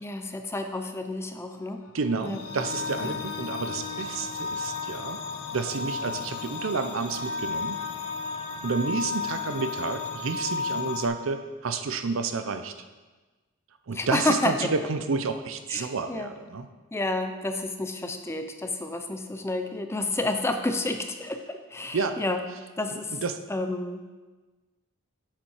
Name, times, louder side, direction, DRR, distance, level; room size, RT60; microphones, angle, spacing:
voice 1, 0.0-1.8 2.2-2.4 3.0-3.2 13.9-14.7 15.7-16.3 16.9-22.4 22.8-23.2 23.5-24.0, left 2 dB, 10° left, 6 dB, 0.5 m, -30 dB
voice 2, 1.9-5.2 5.5-7.8 8.6-12.7 13.9-16.7 21.9-22.2 22.9-23.4, right 4 dB, 65° right, 9 dB, 0.6 m, -30 dB
sound 1, 2.0-11.1, left 4 dB, 85° left, 0.9 m, -33 dB
7.4 x 6.8 x 4.8 m, 1.2 s
head